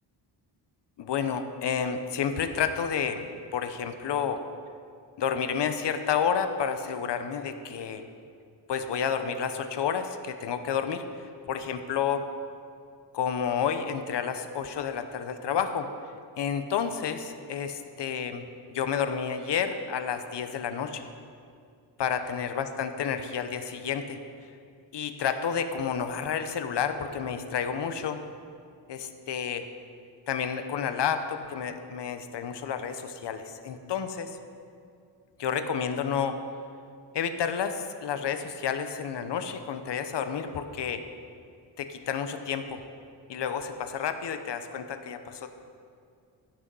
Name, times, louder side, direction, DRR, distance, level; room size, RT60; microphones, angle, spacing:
voice 1, 1.0-4.4 5.2-8.1 8.7-11.0 11.5-12.3 13.1-15.9 16.4-18.4 18.7-21.1 22.0-24.2 24.9-28.2 28.9-29.7 30.3-34.3 35.4-36.4 37.1-41.0 41.8-42.8 43.3-45.5, left 7 dB, 70° left, 9 dB, 0.8 m, -30 dB
16.0 x 6.2 x 5.4 m, 2.4 s
wide cardioid pair, 135°, 44 cm